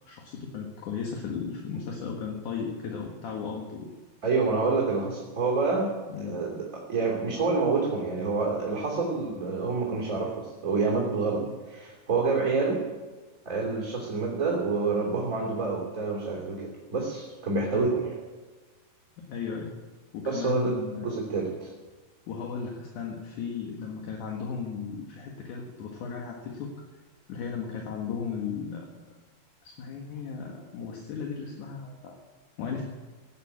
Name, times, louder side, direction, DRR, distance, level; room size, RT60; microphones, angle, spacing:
voice 1, 0.1-3.9 6.1-6.4 11.3-11.5 17.7-17.9 19.2-19.7 20.1-21.1 22.3-26.7 27.3-28.9 29.6-32.2 32.6-32.8, left 6 dB, 65° left, 0 dB, 3.0 m, -35 dB
voice 2, 4.2-12.8 13.4-18.1 20.2-21.7, right 4 dB, 25° right, -3 dB, 3.2 m, -28 dB
17.0 x 9.5 x 8.6 m, 1.3 s
omnidirectional pair, 3.9 m